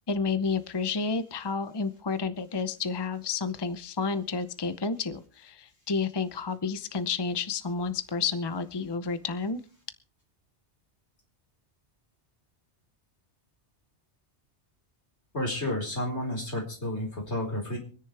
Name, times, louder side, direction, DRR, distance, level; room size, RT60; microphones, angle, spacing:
voice 1, 0.1-9.6, left 5 dB, 25° left, 11 dB, 0.8 m, -30 dB
voice 2, 15.3-17.8, left 1 dB, 75° left, 0 dB, 5.1 m, -31 dB
26.0 x 10.5 x 3.4 m, 0.38 s
omnidirectional pair, 1.1 m